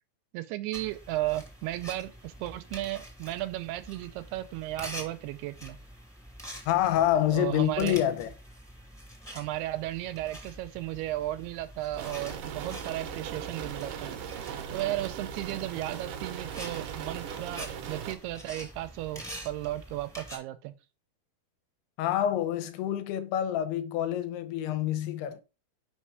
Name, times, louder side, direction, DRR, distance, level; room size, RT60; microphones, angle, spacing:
voice 1, 0.3-5.8 7.3-8.0 9.3-14.1 14.7-20.7, right 16 dB, 85° right, 2.6 m, -35 dB
sound 1, 0.7-20.4, equal, 5° left, 0.6 m, -46 dB
voice 2, 6.7-8.3 22.0-25.4, left 11 dB, 85° left, 2.8 m, -27 dB
sound 2, 12.0-18.1, right 8 dB, 70° right, 2.1 m, -38 dB
6.0 x 5.5 x 4.7 m
omnidirectional pair, 4.6 m